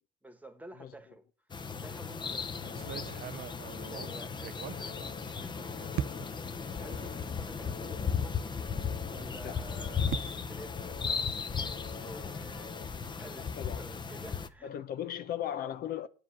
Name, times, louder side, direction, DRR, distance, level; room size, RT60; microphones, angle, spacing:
voice 1, 0.2-1.3 1.7-2.9 3.6-6.0 6.7-8.6 9.1-12.8 13.0-14.7, right 2 dB, 10° right, 1.3 m, -51 dB
sound 1, 1.5-14.5, left 6 dB, 25° left, 0.8 m, -36 dB
sound 2, 2.3-12.9, left 6 dB, 85° left, 1.6 m, -50 dB
sound 3, 2.7-5.5 5.9-6.5 7.2-7.3 7.7-7.8 9.4-11.7, right 12 dB, 70° right, 0.5 m, -41 dB
voice 2, 13.4-13.9 14.6-16.1, left 10 dB, 65° left, 0.7 m, -37 dB
9.4 x 5.0 x 7.3 m
cardioid pair, 110°, 17 cm